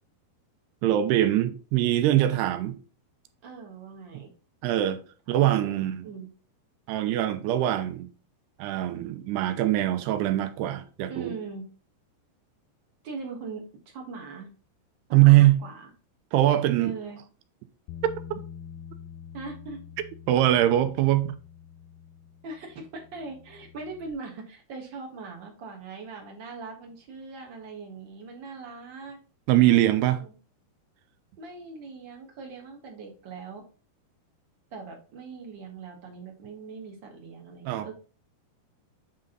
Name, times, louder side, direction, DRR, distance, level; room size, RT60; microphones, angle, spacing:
voice 1, 0.8-2.8 4.1-4.2 4.6-5.0 5.3-6.1 6.9-8.1 8.6-11.3 15.1-15.6 16.3-17.0 18.0-18.4 20.3-21.3 29.5-30.2 37.7-37.9, right 14 dB, 90° right, 2.8 m, -22 dB
voice 2, 3.4-4.3 5.3-5.7 6.0-6.3 11.1-11.6 13.0-14.5 15.1-15.9 16.8-17.2 19.3-19.8 22.4-29.2 29.7-30.3 31.4-33.6 34.7-37.9, right 4 dB, 70° right, 1.1 m, -41 dB
Bass guitar, 17.9-24.1, left 8 dB, 80° left, 2.3 m, -46 dB
8.6 x 3.9 x 3.8 m
omnidirectional pair, 4.7 m